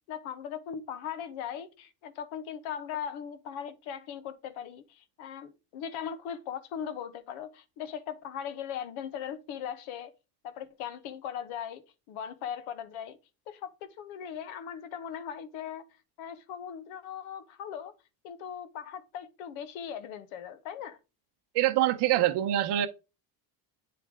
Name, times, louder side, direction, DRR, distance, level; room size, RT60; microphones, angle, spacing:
voice 1, 0.1-10.1 10.4-13.2 13.5-15.9 16.2-17.9 18.2-21.0, left 8 dB, 85° left, 1.0 m, -39 dB
voice 2, 21.5-22.9, right 13 dB, 60° right, 0.8 m, -25 dB
8.7 x 3.3 x 3.6 m
cardioid pair, 125°, 47 cm